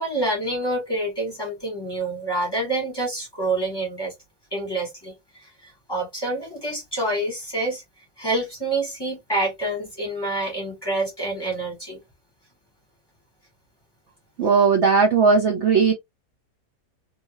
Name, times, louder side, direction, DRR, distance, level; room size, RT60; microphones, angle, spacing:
voice 1, 0.0-4.1 4.5-7.8 8.2-12.0, right 2 dB, 15° left, 1.1 m, -27 dB
voice 2, 14.4-15.9, right 5 dB, 60° right, 0.8 m, -17 dB
2.8 x 2.8 x 2.5 m
omnidirectional pair, 1.7 m